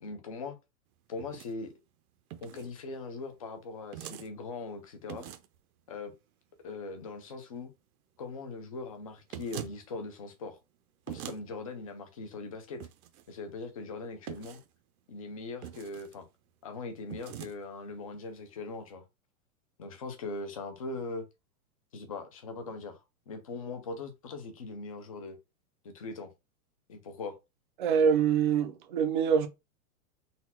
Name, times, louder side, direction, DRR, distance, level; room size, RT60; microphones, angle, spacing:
voice 1, 0.0-0.6 1.1-1.7 2.4-5.3 5.9-6.1 6.6-7.7 8.2-10.6 11.1-12.8 13.3-14.6 15.1-16.2 16.6-19.0 19.8-21.2 21.9-25.4 25.8-26.3 26.9-27.3, left 3 dB, 25° left, 0.4 m, -40 dB
sound 1, 1.2-1.5 2.3-2.7 3.9-4.3 5.1-5.6 9.3-9.8 11.1-11.4 12.8-13.2 14.3-14.7 15.6-16.2 17.1-17.5, right 11 dB, 75° right, 0.7 m, -42 dB
voice 2, 27.8-29.5, right 7 dB, 35° right, 0.5 m, -25 dB
4.0 x 2.3 x 4.2 m
supercardioid pair, 170°, 44 cm